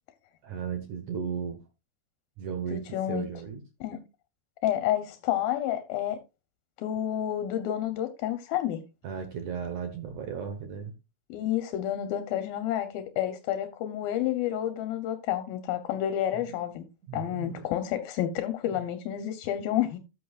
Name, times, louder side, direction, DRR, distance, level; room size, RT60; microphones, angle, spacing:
voice 1, 0.4-1.6 2.4-3.6 9.0-10.9 16.3-16.7 17.1-17.7, right 7 dB, 65° right, 2.2 m, -35 dB
voice 2, 2.7-3.3 3.8-4.0 4.6-6.2 6.8-8.8 11.3-16.9 17.1-20.0, left 11 dB, 80° left, 2.7 m, -30 dB
13.5 x 8.5 x 2.4 m
omnidirectional pair, 4.3 m